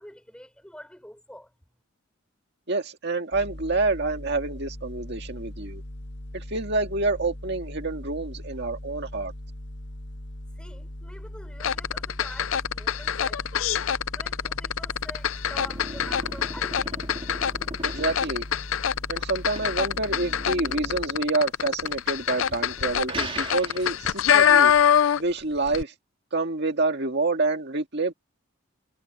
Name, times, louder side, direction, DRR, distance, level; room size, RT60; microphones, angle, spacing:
voice 1, 0.0-1.5 10.6-13.7 14.1-17.1, left 1 dB, 5° left, 4.9 m, -46 dB
voice 2, 2.7-5.8 6.3-9.3 17.8-18.5 19.1-24.7 25.2-25.9 26.3-28.1, right 3 dB, 55° right, 1.9 m, -27 dB
sound 1, 3.3-21.1, left 1 dB, 60° left, 1.7 m, -40 dB
sound 2, 11.6-25.4 25.7-25.8, left 8 dB, 80° left, 0.5 m, -24 dB
sound 3, 15.0-24.3, right 2 dB, 30° right, 3.8 m, -40 dB
head